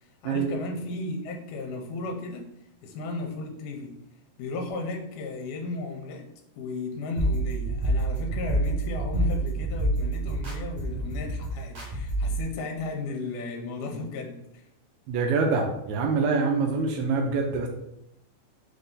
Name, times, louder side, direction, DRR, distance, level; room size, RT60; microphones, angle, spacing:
voice 1, 0.0-2.5 2.8-4.0 4.4-6.3 6.6-14.7, left 3 dB, 80° left, 2 dB, 2.1 m, -35 dB
sound 1, 7.2-12.4, right 1 dB, 50° right, 1.5 m, -27 dB
voice 2, 15.1-17.7, right 4 dB, 80° right, 2 dB, 1.8 m, -25 dB
4.9 x 2.6 x 3.6 m, 0.78 s
omnidirectional pair, 3.7 m